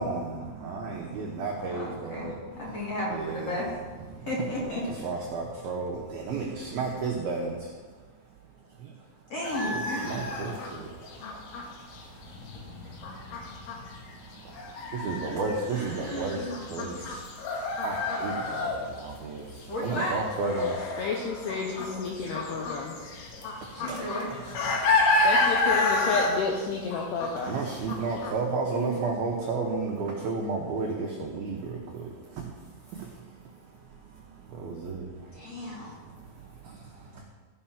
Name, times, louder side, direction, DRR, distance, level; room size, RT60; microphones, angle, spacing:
voice 1, 0.0-2.7 3.1-3.6 4.1-4.3 4.8-7.7 8.8-8.9 9.6-13.0 13.3-13.4 13.9-20.8 21.9-22.4 22.9-23.2 23.5-24.1 24.3-24.4 24.7-25.2 27.4-32.5 32.9-33.1 34.5-35.1 35.5-35.6 35.8-37.2, right 3 dB, 85° right, -1 dB, 2.1 m, -34 dB
voice 2, 1.6-3.8 4.3-5.1 9.3-10.2 15.7-17.0 19.7-20.2 23.7-24.3 28.7-28.9 35.3-36.0, left 1 dB, 45° left, -5 dB, 2.2 m, -34 dB
sound 1, 9.4-19.1 19.4-28.3, left 2 dB, 70° left, 3.5 m, -30 dB
voice 3, 21.0-23.1 25.2-27.6, left 4 dB, 85° left, 0 dB, 2.4 m, -31 dB
15.5 x 5.6 x 5.8 m, 1.4 s
omnidirectional pair, 5.9 m